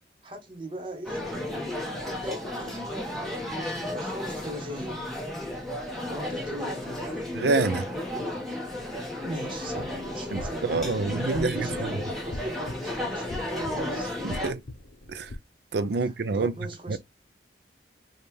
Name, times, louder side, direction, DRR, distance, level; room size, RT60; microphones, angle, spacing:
voice 1, 0.2-1.3 2.1-2.9 3.9-5.2 6.1-7.3 9.2-10.8 11.3-14.1 15.9-17.0, right 1 dB, 25° right, 1.1 m, -39 dB
sound 1, 1.0-14.5, left 1 dB, ahead, 1.2 m, -33 dB
voice 2, 7.3-7.9 10.3-11.6 14.2-14.6 15.1-15.3 15.7-16.5 16.9-17.0, right 3 dB, 65° right, 0.4 m, -27 dB
sound 2, 9.7-15.4, left 1 dB, 55° left, 0.7 m, -42 dB
5.2 x 2.4 x 3.1 m
head